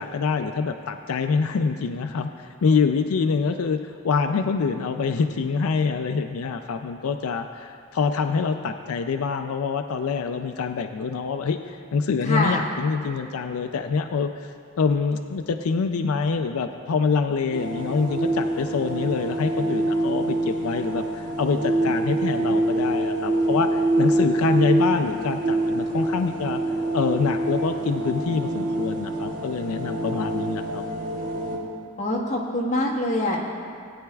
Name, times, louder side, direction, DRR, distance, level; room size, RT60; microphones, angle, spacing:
voice 1, 0.0-3.8 4.0-14.3 14.8-26.6 26.9-30.8, left 5 dB, 90° left, 7 dB, 0.4 m, -25 dB
voice 2, 12.2-12.6 32.0-33.4, left 1 dB, 35° left, -4 dB, 1.4 m, -24 dB
sound 1, 17.5-31.6, right 2 dB, 70° right, 2.3 m, -25 dB
17.0 x 9.3 x 2.3 m, 2.3 s
head